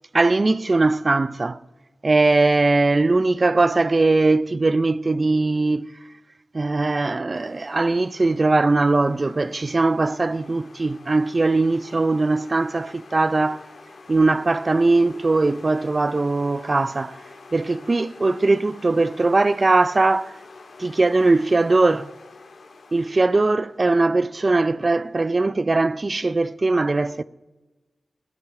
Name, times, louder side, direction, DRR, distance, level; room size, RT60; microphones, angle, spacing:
voice 1, 0.1-1.6 2.0-5.9 6.5-13.6 14.1-17.2 17.5-20.4 20.8-22.1 22.9-27.2, right 3 dB, 40° right, 0.5 m, -20 dB
sound 1, 7.3-25.1, left 3 dB, 70° left, 1.7 m, -47 dB
14.0 x 9.4 x 6.7 m
cardioid pair, 65°, 0 cm